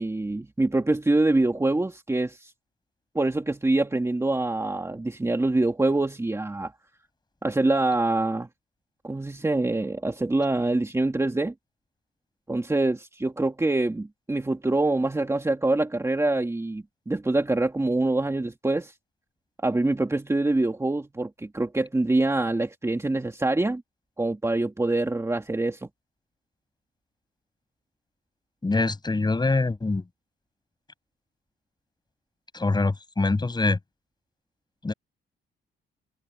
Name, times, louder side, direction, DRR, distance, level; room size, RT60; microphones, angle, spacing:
voice 1, 0.0-2.5 3.1-6.7 7.4-8.5 9.0-11.5 12.5-18.9 19.6-23.8 24.2-25.9, right 2 dB, 15° right, 2.4 m, -25 dB
voice 2, 28.6-30.0 32.5-33.8 34.8-34.9, left 3 dB, 20° left, 8.0 m, -24 dB
cardioid pair, 90°, 20 cm